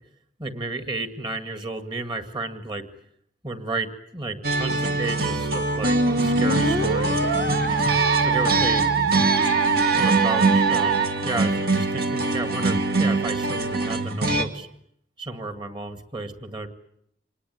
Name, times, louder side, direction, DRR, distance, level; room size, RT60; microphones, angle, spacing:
voice 1, 0.4-2.9 3.4-7.3 8.2-8.9 9.6-14.7 15.2-16.7, right 3 dB, 25° right, 8 dB, 2.1 m, -32 dB
sound 1, 4.4-14.4, right 2 dB, 55° right, 2.1 m, -24 dB
Musical instrument, 5.8-11.1, right 5 dB, 85° right, 2.6 m, -23 dB
26.5 x 20.0 x 9.5 m, 0.74 s
head